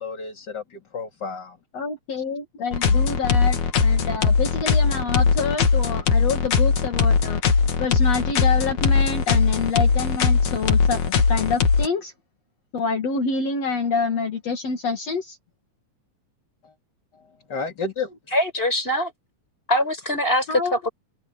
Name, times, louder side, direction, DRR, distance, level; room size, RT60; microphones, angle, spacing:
voice 1, 0.0-1.6 16.6-16.7 17.5-18.1, left 4 dB, 35° left, 3.3 m, -31 dB
voice 2, 1.7-7.4 7.8-12.1 12.7-15.4 20.5-20.7, left 4 dB, 60° left, 3.5 m, -27 dB
sound 1, 2.7-11.9, left 5 dB, 75° left, 3.5 m, -20 dB
voice 3, 18.3-19.1 19.7-20.9, left 1 dB, 15° left, 6.7 m, -22 dB
omnidirectional pair, 3.4 m